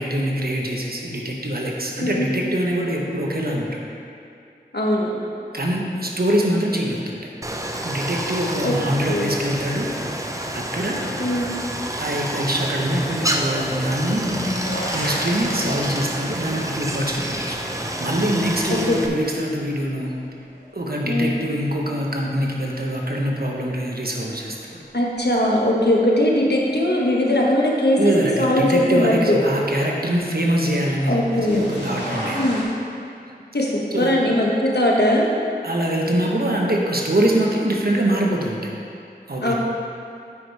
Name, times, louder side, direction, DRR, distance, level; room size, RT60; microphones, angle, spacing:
voice 1, 0.0-3.8 5.5-7.3 7.8-9.9 10.5-11.0 12.0-14.4 14.9-17.6 18.0-20.1 20.7-24.8 28.0-32.6 33.9-34.1 35.6-38.7 39.3-39.5, right 1 dB, 60° right, -1 dB, 1.1 m, -24 dB
voice 2, 4.7-5.1 8.6-8.7 9.1-9.4 11.2-11.5 18.9-19.0 21.0-21.4 24.9-29.4 31.1-31.6 32.2-32.7 33.5-35.3 39.4-39.5, left 1 dB, 70° left, -3 dB, 1.3 m, -20 dB
Stream, 7.4-19.1, right 1 dB, 20° right, 0.6 m, -28 dB
sound 1, 13.7-20.8 21.2-21.9 23.5-23.6 25.2-25.3 31.0-32.6, equal, 90° left, 1.7 m, -32 dB
8.6 x 5.1 x 4.8 m, 2.5 s
wide cardioid pair, 40°, 17 cm